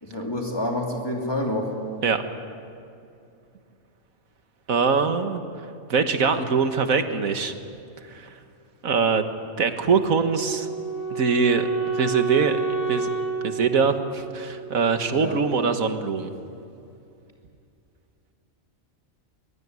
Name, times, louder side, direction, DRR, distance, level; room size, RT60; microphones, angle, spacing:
voice 1, 0.0-1.7 15.1-15.4, left 1 dB, 15° left, -1 dB, 2.9 m, -28 dB
voice 2, 4.7-5.4 5.9-7.5 8.1-8.3 8.8-9.3 9.6-10.7 11.1-11.7 11.9-12.6 12.9-13.1 13.4-16.3, right 5 dB, 75° right, 8 dB, 1.9 m, -23 dB
Wind instrument woodwind instrument, 10.3-15.3, right 4 dB, 80° left, 3.1 m, -30 dB
22.5 x 22.5 x 9.6 m, 2.5 s
omnidirectional pair, 1.4 m